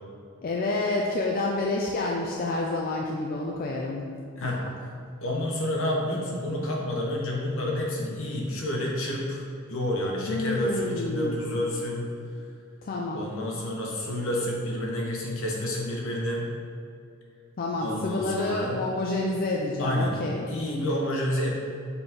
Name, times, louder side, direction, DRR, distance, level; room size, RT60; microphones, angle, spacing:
voice 1, 0.4-4.1 4.4-4.5 10.3-11.4 12.8-13.2 17.6-20.5, left 2 dB, 40° left, -1 dB, 0.4 m, -28 dB
voice 2, 5.2-12.1 13.1-16.4 17.8-18.8 19.8-20.2 20.5-21.6, left 1 dB, 65° left, -1 dB, 1.2 m, -29 dB
6.8 x 4.1 x 3.7 m, 2.4 s
head